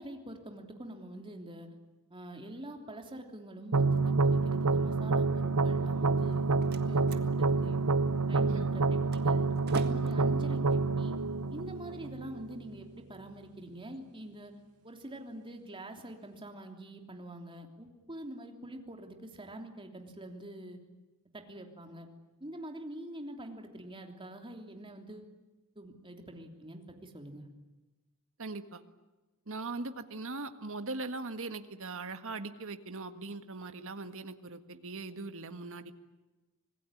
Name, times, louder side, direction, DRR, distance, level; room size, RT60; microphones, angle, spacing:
voice 1, 0.0-1.7 2.1-7.8 8.3-9.5 9.8-11.2 11.5-14.5 14.8-20.8 21.3-22.1 22.4-25.3 25.7-27.5, right 1 dB, 25° right, 4 dB, 3.2 m, -45 dB
sound 1, 3.7-12.7, right 4 dB, 80° right, 0.8 m, -28 dB
Slam, 6.1-12.1, right 3 dB, 45° right, 1.8 m, -48 dB
voice 2, 28.4-28.8 29.5-35.9, right 3 dB, 65° right, 9 dB, 1.7 m, -40 dB
26.0 x 20.0 x 9.9 m, 1.1 s
head